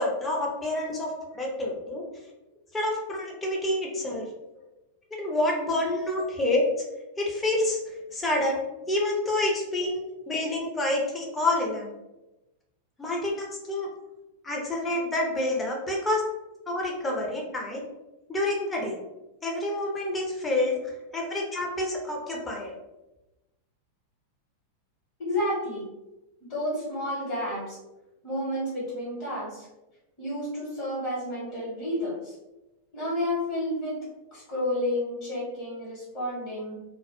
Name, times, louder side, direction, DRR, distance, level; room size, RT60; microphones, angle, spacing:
voice 1, 0.0-2.1 2.7-4.3 5.2-6.6 7.2-8.6 8.9-10.0 10.3-11.9 13.0-13.9 14.4-16.2 16.7-17.8 18.3-19.0 19.4-20.8 21.1-22.7, left 1 dB, 15° left, -2 dB, 0.6 m, -28 dB
voice 2, 25.2-25.9 26.5-27.8 28.2-29.7 30.2-32.3 32.9-34.0 34.3-36.8, left 1 dB, 45° left, -6 dB, 1.0 m, -31 dB
2.1 x 2.0 x 2.9 m, 1.0 s
figure-of-eight pair, 90°, 0 cm